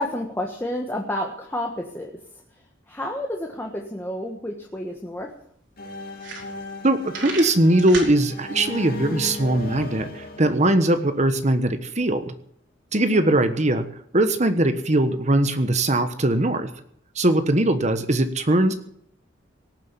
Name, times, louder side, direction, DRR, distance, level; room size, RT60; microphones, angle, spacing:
voice 1, 0.0-2.1 2.9-5.3 13.0-13.4, left 1 dB, 10° left, 0 dB, 1.6 m, -30 dB
sound 1, 4.8-4.9 5.2-5.3 5.8-5.9 6.1-6.8 7.1-8.1, right 4 dB, 65° right, 4.5 m, -33 dB
sound 2, 5.8-11.5, left 2 dB, 50° left, 2.9 m, -36 dB
voice 2, 6.8-12.3 12.9-13.8 14.1-16.7 17.2-18.8, right 1 dB, 35° right, 10 dB, 1.3 m, -20 dB
18.0 x 7.5 x 9.1 m, 0.66 s
head